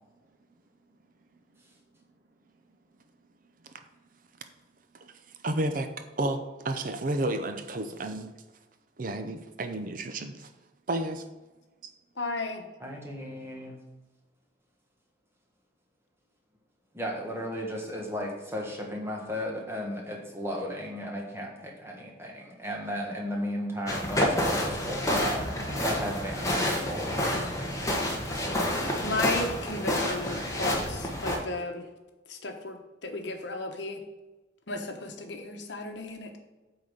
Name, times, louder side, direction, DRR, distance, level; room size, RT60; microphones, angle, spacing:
voice 1, 5.0-5.9 6.2-8.3 9.0-10.5 10.9-11.3, right 1 dB, 45° right, 8 dB, 0.6 m, -31 dB
voice 2, 12.2-12.6 29.0-31.8 32.3-34.0 34.7-36.4, left 2 dB, 65° left, 5 dB, 1.1 m, -34 dB
voice 3, 12.8-13.8 16.9-27.5 28.3-28.5, equal, 15° right, 0 dB, 1.5 m, -35 dB
sound 1, 23.9-31.4, left 1 dB, 15° left, 1.2 m, -29 dB
8.5 x 4.1 x 6.5 m, 1.1 s
head